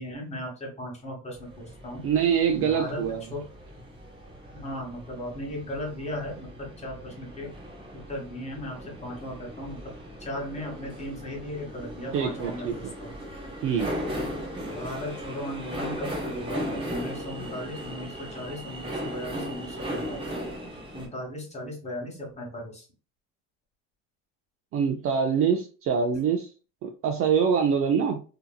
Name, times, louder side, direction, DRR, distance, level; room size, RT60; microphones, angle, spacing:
voice 1, 0.0-2.1 2.6-3.4 4.5-7.5 7.9-9.9 10.2-13.1 14.7-20.3 20.9-22.9, left 1 dB, 20° left, -1 dB, 1.2 m, -37 dB
sound 1, 1.3-21.1, equal, 15° right, 1.0 m, -37 dB
voice 2, 2.0-3.2 12.1-12.9 13.6-13.9 24.7-26.5 26.8-28.2, right 7 dB, 40° right, 4 dB, 0.4 m, -24 dB
2.8 x 2.5 x 2.2 m, 0.35 s
supercardioid pair, 115°, 34 cm